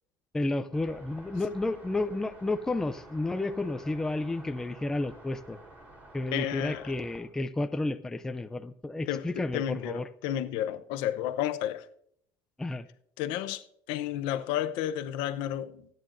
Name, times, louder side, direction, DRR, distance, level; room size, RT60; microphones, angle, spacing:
voice 1, 0.3-5.6 6.1-10.1 12.6-12.9, left 2 dB, 5° left, 0.4 m, -31 dB
sound 1, 0.7-7.2, right 1 dB, 20° right, 3.8 m, -51 dB
voice 2, 6.3-6.9 9.1-11.9 13.2-15.9, left 11 dB, 75° left, 0.8 m, -32 dB
25.0 x 9.3 x 2.6 m
cardioid pair, 170°, 8 cm